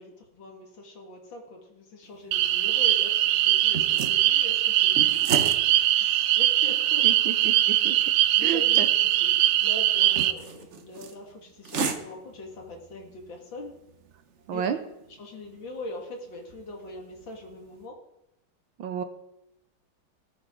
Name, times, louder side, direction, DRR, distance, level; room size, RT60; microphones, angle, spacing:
voice 1, 0.0-7.1 7.9-8.1 8.4-13.7 14.5-14.6 15.1-18.0, left 2 dB, 60° left, 1 dB, 2.7 m, -42 dB
sound 1, 2.0-17.8, right 5 dB, 50° right, 0.8 m, -39 dB
sound 2, 2.3-10.3, right 13 dB, 90° right, 1.6 m, -22 dB
voice 2, 7.0-8.0 8.4-8.9 14.5-14.8 18.8-19.0, right 8 dB, 70° right, 9 dB, 1.5 m, -31 dB
19.0 x 8.8 x 3.8 m, 0.84 s
omnidirectional pair, 2.4 m